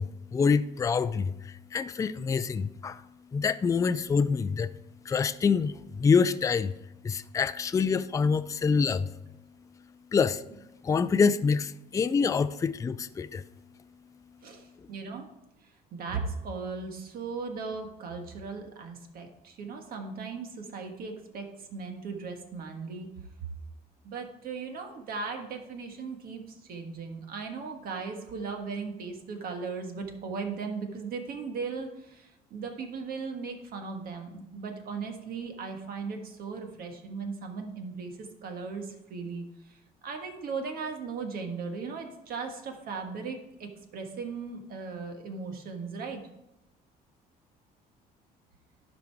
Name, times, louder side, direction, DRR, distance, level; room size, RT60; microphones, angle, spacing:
voice 1, 0.0-4.7 5.0-6.8 7.0-9.2 10.1-10.4 10.8-13.5, left 5 dB, 20° left, 12 dB, 0.3 m, -26 dB
voice 2, 14.4-15.3 15.6-23.1 24.0-46.2, right 4 dB, 60° right, 4 dB, 1.5 m, -37 dB
11.5 x 5.2 x 4.6 m, 0.88 s
cardioid pair, 110°, 17 cm